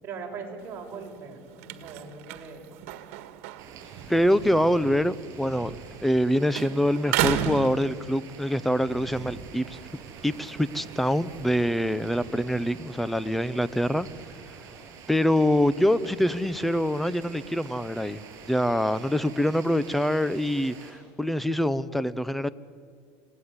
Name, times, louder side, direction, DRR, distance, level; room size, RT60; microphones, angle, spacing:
voice 1, 0.0-2.8, right 5 dB, 30° right, 0 dB, 6.0 m, -40 dB
sound 1, 0.6-6.2 6.5-8.5 9.0-12.1, right 11 dB, 75° right, 1.7 m, -35 dB
sound 2, 3.6-20.9, right 6 dB, 45° right, 7.7 m, -45 dB
voice 2, 4.1-5.7 6.0-9.8 10.2-14.1 15.1-18.2 18.5-22.5, equal, ahead, 17 dB, 0.7 m, -25 dB
28.5 x 18.0 x 9.7 m, 2.1 s
supercardioid pair, 135°, 7 cm